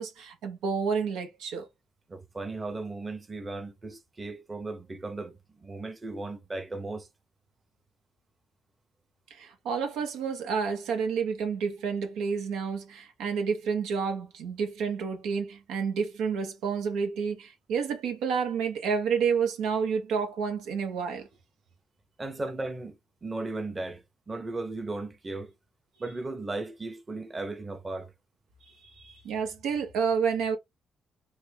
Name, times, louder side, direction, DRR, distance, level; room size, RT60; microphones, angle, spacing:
voice 1, 0.0-1.7 9.3-21.3 28.8-30.6, right 6 dB, 90° right, 0.8 m, -30 dB
voice 2, 2.1-7.1 22.2-25.5 26.0-28.1, right 2 dB, 25° right, 0.8 m, -36 dB
3.3 x 2.1 x 3.3 m
cardioid pair, 90°, 0 cm